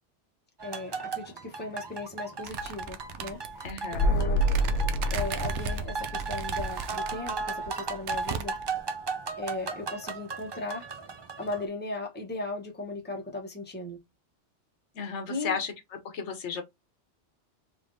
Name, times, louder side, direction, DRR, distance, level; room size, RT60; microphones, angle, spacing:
voice 1, 0.6-3.6 3.9-4.5 5.1-8.6 9.4-10.9 11.4-14.0 15.3-15.6, left 2 dB, 10° left, 0.9 m, -37 dB
sound 1, 0.6-11.6, right 4 dB, 40° right, 0.3 m, -36 dB
sound 2, 2.4-7.3 7.7-7.8 8.0-8.8, right 5 dB, 85° right, 0.9 m, -36 dB
voice 2, 3.6-4.2 14.9-15.7 16.1-16.6, left 6 dB, 75° left, 1.1 m, -33 dB
sound 3, 3.9-7.7 7.9-8.0, equal, 55° left, 0.5 m, -28 dB
3.6 x 3.3 x 2.6 m
omnidirectional pair, 1.2 m